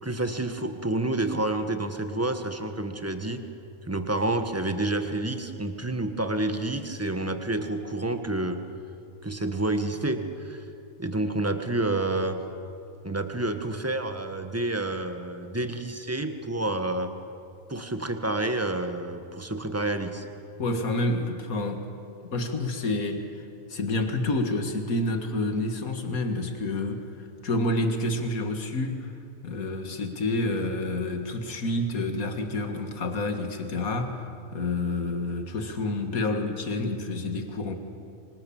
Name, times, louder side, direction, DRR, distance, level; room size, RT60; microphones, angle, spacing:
voice 1, 0.0-3.4 3.9-8.6 9.2-10.7 11.0-12.4 13.0-17.1 17.7-20.3, right 2 dB, 10° right, 7 dB, 1.5 m, -29 dB
voice 2, 20.6-21.8 22.3-23.4 23.7-29.1 29.4-37.8, left 2 dB, 80° left, 6 dB, 2.3 m, -29 dB
25.5 x 25.5 x 7.2 m, 2.6 s
omnidirectional pair, 1.5 m